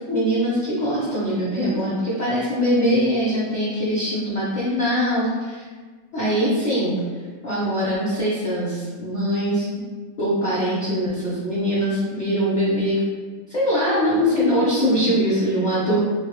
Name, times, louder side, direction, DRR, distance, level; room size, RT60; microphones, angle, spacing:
voice 1, 0.0-5.6 6.1-7.0 7.4-9.7 10.2-13.0 13.5-16.0, equal, 45° left, -9 dB, 0.7 m, -22 dB
3.3 x 2.5 x 2.9 m, 1.5 s
omnidirectional pair, 1.4 m